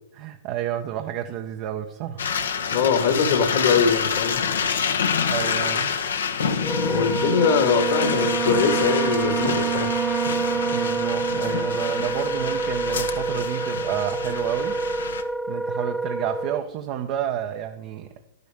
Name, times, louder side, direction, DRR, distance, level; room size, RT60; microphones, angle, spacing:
voice 1, 0.1-2.3 5.3-5.9 10.7-14.8 15.5-18.1, right 10 dB, 45° right, 5 dB, 0.9 m, -30 dB
sound 1, 2.2-15.2, left 6 dB, 75° left, 1.1 m, -27 dB
voice 2, 2.7-4.5 6.9-10.0, left 6 dB, 55° left, 7 dB, 1.8 m, -22 dB
Wind instrument woodwind instrument, 6.6-16.7, right 3 dB, 5° right, 0.5 m, -28 dB
Wind instrument woodwind instrument 2, 7.2-12.6, right 12 dB, 25° right, 1.0 m, -30 dB
11.5 x 10.5 x 3.6 m, 0.87 s
hypercardioid pair, 105°, 0 cm